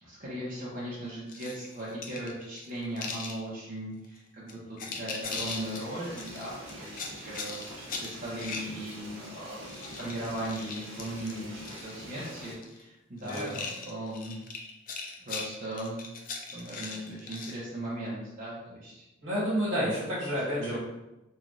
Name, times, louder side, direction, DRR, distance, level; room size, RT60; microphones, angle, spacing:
voice 1, 0.0-14.3 15.2-16.0 16.5-19.0 20.6-20.8, right 1 dB, 45° right, -8 dB, 0.7 m, -38 dB
sound 1, 1.3-3.4 4.0-4.2 4.5-5.8 6.2-9.3 9.5-11.9 12.2-12.8 13.2-17.6, left 4 dB, 45° left, 0.4 m, -39 dB
sound 2, 5.2-12.5, equal, 90° right, 0.8 m, -45 dB
voice 2, 13.2-13.6 19.2-20.8, equal, 70° right, -7 dB, 1.3 m, -30 dB
3.0 x 2.3 x 2.5 m, 0.96 s
head